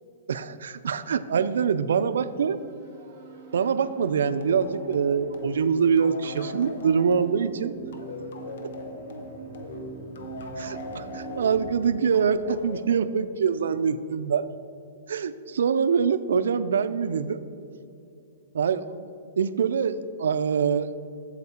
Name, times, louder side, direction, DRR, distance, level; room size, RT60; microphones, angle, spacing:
voice 1, 0.3-2.6 3.5-7.8 10.6-14.5 15.1-17.4 18.5-19.1 19.4-20.9, right 6 dB, 90° right, 14 dB, 0.4 m, -24 dB
sound 1, 1.8-12.1, right 5 dB, 30° right, 1.1 m, -44 dB
sound 2, 4.4-13.6, left 2 dB, 55° left, 0.8 m, -40 dB
8.1 x 7.6 x 4.3 m, 2.6 s
hypercardioid pair, 180°, 0 cm